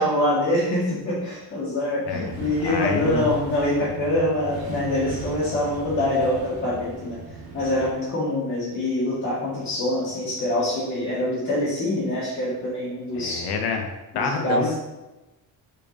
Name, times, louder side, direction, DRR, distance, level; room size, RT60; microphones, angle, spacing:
voice 1, 0.0-7.2 7.5-13.5 14.1-14.7, left 1 dB, 25° left, -9 dB, 1.9 m, -25 dB
sound 1, 2.1-7.9, right 2 dB, 65° right, 1.6 m, -37 dB
voice 2, 2.6-3.2 13.2-13.9 14.1-14.7, left 5 dB, 70° left, 3 dB, 1.2 m, -27 dB
7.0 x 4.6 x 4.1 m, 1.1 s
cardioid pair, 180°, 41 cm